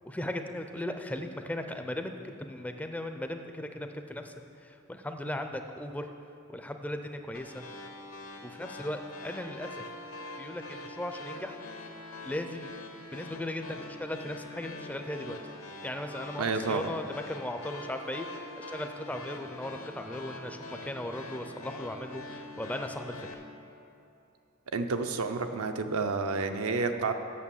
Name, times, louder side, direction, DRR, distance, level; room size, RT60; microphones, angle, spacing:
voice 1, 0.0-4.3 4.6-6.1 6.5-7.6 8.4-9.8 10.4-11.6 12.2-12.7 13.1-15.4 15.8-23.4, left 1 dB, 5° left, 6 dB, 0.4 m, -37 dB
sound 1, 7.3-23.3, left 2 dB, 75° left, 0.9 m, -44 dB
voice 2, 16.4-16.9 24.7-27.1, right 4 dB, 85° right, 6 dB, 0.7 m, -30 dB
8.5 x 6.8 x 7.0 m, 2.8 s
head